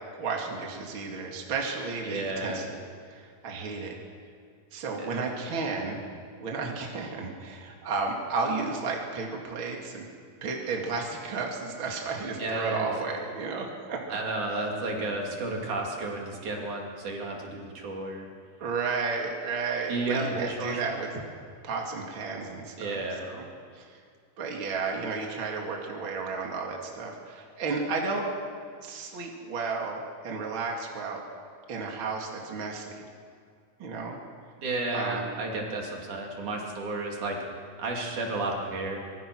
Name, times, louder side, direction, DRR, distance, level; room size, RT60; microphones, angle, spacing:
voice 1, 0.2-2.8 3.1-4.0 4.7-6.0 6.4-10.1 10.4-14.0 18.6-21.1 21.6-23.4 23.7-24.0 24.4-28.3 28.8-31.2 31.7-33.0 33.8-34.2 34.9-35.3, right 4 dB, 40° right, 0 dB, 2.9 m, -33 dB
voice 2, 2.0-2.7 5.0-5.1 12.4-12.9 14.1-18.3 19.9-21.0 22.8-23.2 34.6-37.4 37.8-39.0, right 2 dB, 70° right, -1 dB, 4.4 m, -32 dB
25.5 x 22.5 x 6.3 m, 2.2 s
omnidirectional pair, 3.6 m